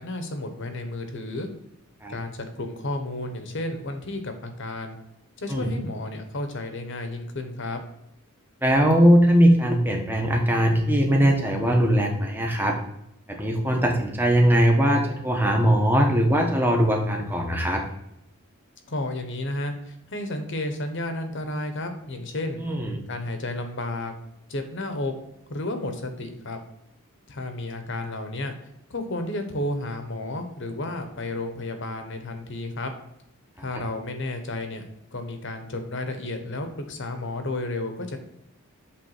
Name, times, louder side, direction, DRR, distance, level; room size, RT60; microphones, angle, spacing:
voice 1, 0.0-1.5 2.1-5.0 5.4-7.8 18.9-22.6 23.1-24.1 24.5-25.1 25.5-26.6 27.3-28.5 28.9-32.9 33.6-38.2, left 2 dB, 55° left, 6 dB, 1.0 m, -32 dB
voice 2, 8.6-12.8 13.3-17.8 22.6-23.0, equal, 10° right, 1 dB, 1.0 m, -20 dB
7.9 x 3.4 x 4.7 m, 0.81 s
head